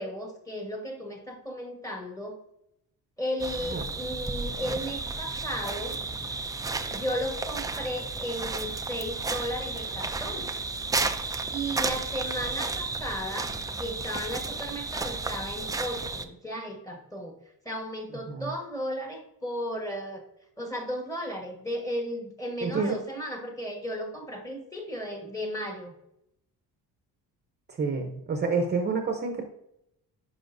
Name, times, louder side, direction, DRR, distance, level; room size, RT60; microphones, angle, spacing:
voice 1, 0.0-2.4 3.2-6.0 6.9-10.5 11.5-13.5 13.8-17.4 17.6-20.2 20.6-25.9, equal, 10° left, 1 dB, 1.4 m, -35 dB
sound 1, 3.4-16.3, right 3 dB, 10° right, 0.3 m, -33 dB
voice 2, 22.6-22.9 27.7-29.4, right 4 dB, 25° right, 4 dB, 0.7 m, -28 dB
10.0 x 5.6 x 2.6 m, 0.79 s
cardioid pair, 140°, 38 cm